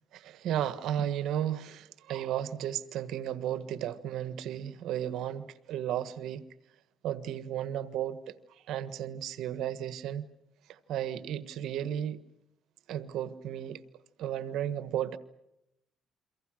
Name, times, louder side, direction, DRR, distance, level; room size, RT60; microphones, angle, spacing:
voice 1, 0.1-6.4 7.0-8.2 8.7-10.3 10.9-12.2 12.9-13.8 14.2-15.2, right 10 dB, 85° right, 1.4 m, -34 dB
28.5 x 24.0 x 6.4 m
cardioid pair, 90°, 0 cm